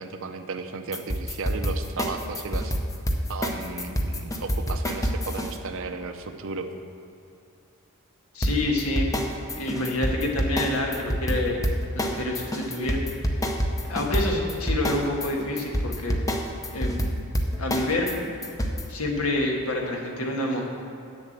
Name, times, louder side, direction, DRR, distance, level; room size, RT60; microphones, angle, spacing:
voice 1, 0.0-2.8 3.3-6.7, right 4 dB, 65° right, 7 dB, 0.7 m, -34 dB
sound 1, 0.9-5.5 8.4-18.8, equal, 15° left, 0.7 m, -27 dB
voice 2, 8.3-9.1 9.5-11.7 12.0-13.0 13.9-16.3 16.7-17.0 17.6-18.1 18.9-20.6, left 1 dB, 80° left, 0 dB, 1.6 m, -27 dB
8.2 x 7.2 x 7.4 m, 2.8 s
head